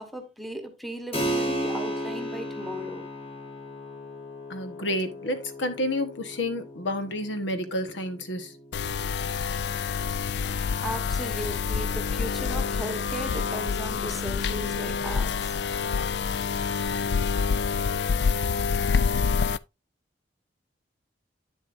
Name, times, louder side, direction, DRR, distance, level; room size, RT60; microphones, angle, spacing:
voice 1, 0.0-3.1 10.8-15.6, right 1 dB, ahead, 1.2 m, -37 dB
Keyboard (musical), 1.1-11.3, right 1 dB, 30° left, 2.4 m, -36 dB
voice 2, 4.5-8.5, left 1 dB, 80° left, 1.3 m, -30 dB
sound 1, 8.7-19.6, left 5 dB, 60° left, 0.4 m, -27 dB
9.3 x 7.4 x 2.6 m
head